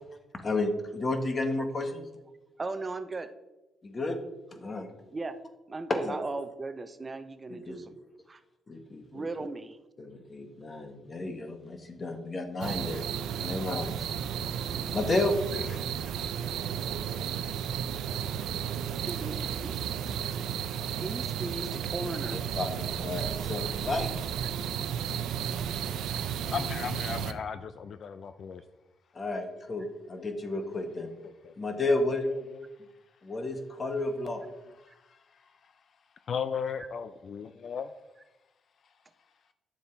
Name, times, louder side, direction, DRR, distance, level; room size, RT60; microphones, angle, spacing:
voice 1, 0.4-2.0 3.8-4.2 4.5-4.9 5.9-6.2 7.5-7.8 8.7-9.3 10.0-13.0 13.4-14.1 14.9-15.9 22.6-24.1 29.1-31.1 31.6-32.3 33.2-34.4, left 2 dB, 35° left, 6 dB, 1.5 m, -32 dB
voice 2, 2.6-3.3 5.1-5.4 5.7-7.9 8.3-8.4 9.1-9.8 19.1-19.8 21.0-22.4 29.3-29.4, right 3 dB, 25° right, 10 dB, 0.7 m, -37 dB
sound 1, 12.6-27.3, right 9 dB, 80° right, 0.6 m, -33 dB
voice 3, 26.5-28.6 29.7-29.9 30.2-30.3 30.9-31.5 32.2-32.7 34.8-35.7 36.3-37.9, left 7 dB, 55° left, 11 dB, 0.4 m, -37 dB
10.0 x 7.1 x 4.5 m, 1.0 s
cardioid pair, 90°, 0 cm